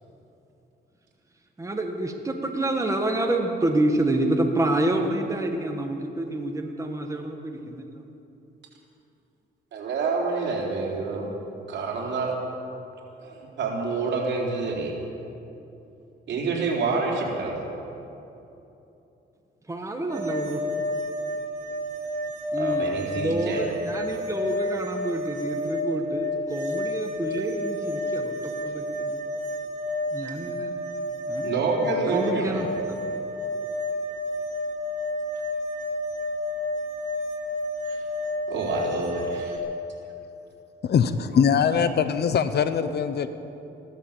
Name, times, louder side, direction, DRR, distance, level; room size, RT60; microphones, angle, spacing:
voice 1, 1.6-8.0 19.7-20.6 22.5-29.2 30.1-30.7 31.3-31.5 31.8-32.7, right 1 dB, 15° right, 1.6 m, -28 dB
voice 2, 9.7-11.3 11.7-12.4 13.2-14.9 16.3-17.6 22.6-23.7 31.4-32.6 37.9-38.0 38.5-39.6, right 4 dB, 65° right, 3.8 m, -28 dB
sound 1, 20.1-39.6, left 1 dB, 35° right, 3.3 m, -30 dB
voice 3, 40.8-43.3, left 7 dB, 55° left, 0.9 m, -22 dB
15.5 x 12.5 x 7.4 m
cardioid pair, 90°, 20 cm